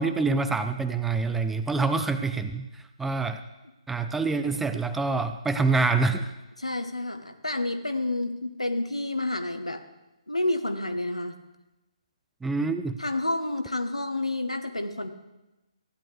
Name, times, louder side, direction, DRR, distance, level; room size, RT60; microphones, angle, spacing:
voice 1, 0.0-2.7 3.0-3.4 3.9-6.3 12.4-13.0, right 3 dB, 5° right, 10 dB, 0.3 m, -26 dB
voice 2, 6.6-9.8 10.3-11.4 13.0-15.1, left 2 dB, 85° left, 8 dB, 1.1 m, -29 dB
15.5 x 10.5 x 3.3 m, 1.0 s
figure-of-eight pair, 135°, 3 cm